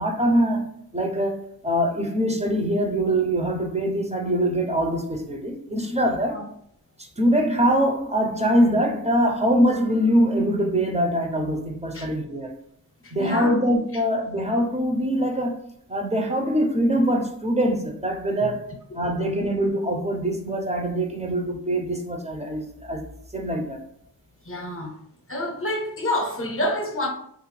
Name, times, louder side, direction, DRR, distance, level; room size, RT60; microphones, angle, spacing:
voice 1, 0.0-6.5 7.0-12.5 13.1-15.6 15.9-18.7 18.9-23.0 23.3-23.8, equal, 15° right, 0.5 m, -23 dB
voice 2, 13.2-13.5 19.0-19.1 24.5-24.9 25.3-27.1, left 1 dB, 35° left, 0.7 m, -27 dB
3.1 x 2.5 x 3.1 m
cardioid pair, 65°, 38 cm